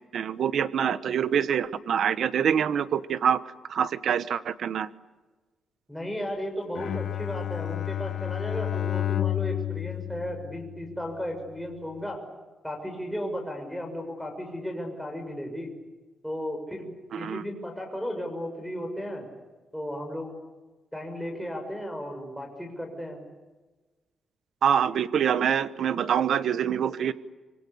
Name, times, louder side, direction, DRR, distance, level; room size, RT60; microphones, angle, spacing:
voice 1, 0.1-3.4 3.7-4.9 17.1-17.4 24.6-27.1, right 8 dB, 60° right, 14 dB, 1.1 m, -25 dB
voice 2, 5.9-12.2 12.6-15.7 16.2-19.3 19.7-20.3 20.9-23.2, equal, ahead, 1 dB, 6.4 m, -35 dB
Bowed string instrument, 6.7-11.1, left 12 dB, 60° left, 1.2 m, -31 dB
26.5 x 24.0 x 8.5 m, 1.2 s
cardioid pair, 150°, 0 cm